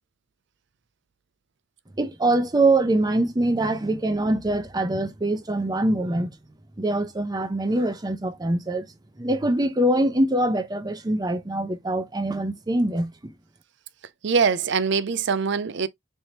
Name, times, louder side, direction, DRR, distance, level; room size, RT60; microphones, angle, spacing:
voice 1, 2.0-6.3 6.8-8.9 9.2-13.3, right 1 dB, 20° right, 0.7 m, -23 dB
voice 2, 14.2-15.9, right 5 dB, 65° right, 0.5 m, -23 dB
4.4 x 3.4 x 2.8 m
head